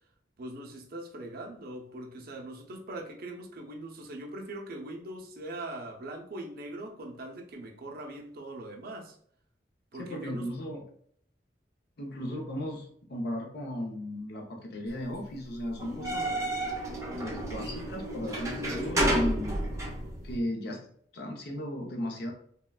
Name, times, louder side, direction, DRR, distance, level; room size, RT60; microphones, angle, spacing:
voice 1, 0.4-9.2 9.9-10.5, right 1 dB, 60° right, 0.6 m, -41 dB
voice 2, 10.0-10.8 12.0-16.3 17.2-19.6 20.2-20.9 21.1-22.3, left 1 dB, 65° left, 0.6 m, -36 dB
sound 1, 15.8-20.4, right 1 dB, 20° right, 0.6 m, -31 dB
3.5 x 2.2 x 2.3 m
head